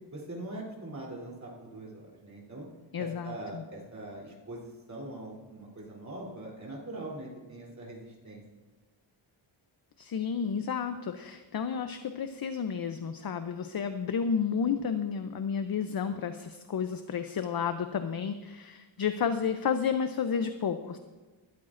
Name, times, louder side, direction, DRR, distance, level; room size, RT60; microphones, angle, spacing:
voice 1, 0.1-2.7 3.0-8.4, right 1 dB, 35° right, -3 dB, 3.3 m, -42 dB
voice 2, 2.9-3.6 10.0-21.0, left 6 dB, 50° left, 9 dB, 0.6 m, -31 dB
20.0 x 13.0 x 2.6 m, 1.3 s
wide cardioid pair, 165°, 47 cm